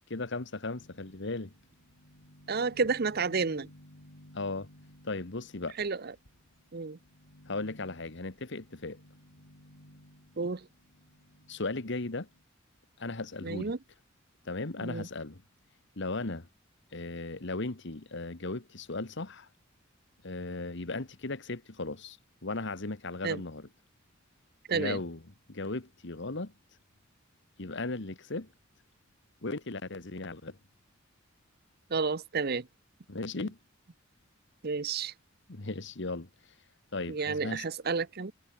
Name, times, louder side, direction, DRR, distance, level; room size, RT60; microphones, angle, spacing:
voice 1, 0.1-1.5 4.3-4.7 5.0-5.8 7.5-9.0 11.5-12.3 13.0-13.7 14.4-15.4 16.0-16.5 16.9-19.5 20.2-22.2 22.4-23.7 24.7-25.2 25.5-26.5 27.6-28.5 29.4-30.6 33.1-33.6 35.5-36.3 36.9-37.7, left 2 dB, 60° left, 1.5 m, -36 dB
sound 1, 0.8-12.4, equal, 85° left, 7.8 m, -57 dB
voice 2, 2.5-3.7 5.8-6.1 6.7-7.0 10.4-10.7 13.4-13.8 14.8-15.1 23.2-23.4 24.7-25.0 31.9-32.7 34.6-35.1 37.1-38.3, right 4 dB, 50° right, 0.8 m, -31 dB
head